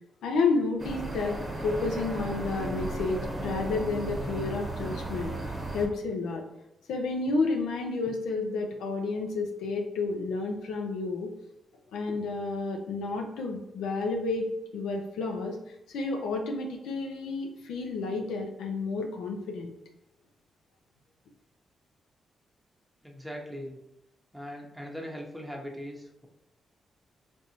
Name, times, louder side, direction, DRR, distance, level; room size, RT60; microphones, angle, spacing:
voice 1, 0.2-5.3 5.7-6.4 6.9-11.3 11.9-19.7, left 3 dB, 85° left, 2 dB, 0.4 m, -31 dB
sound 1, 0.8-5.9, right 2 dB, 35° right, 0.8 m, -35 dB
voice 2, 23.0-23.8 24.3-26.3, equal, 5° right, -1 dB, 0.7 m, -40 dB
3.3 x 2.6 x 2.9 m, 0.87 s
supercardioid pair, 55°, 0 cm